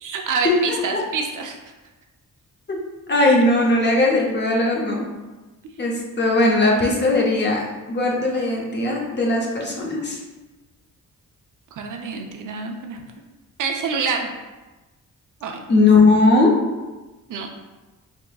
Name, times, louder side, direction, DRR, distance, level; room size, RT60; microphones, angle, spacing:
voice 1, 0.0-1.6 5.6-5.7 11.7-13.0 13.6-14.3 15.4-15.6 17.3-17.7, right 5 dB, 70° right, 3 dB, 0.5 m, -27 dB
voice 2, 3.1-5.1 5.8-10.2 15.7-16.6, left 2 dB, 35° left, -2 dB, 0.6 m, -18 dB
3.7 x 3.6 x 2.3 m, 1.2 s
wide cardioid pair, 165°, 33 cm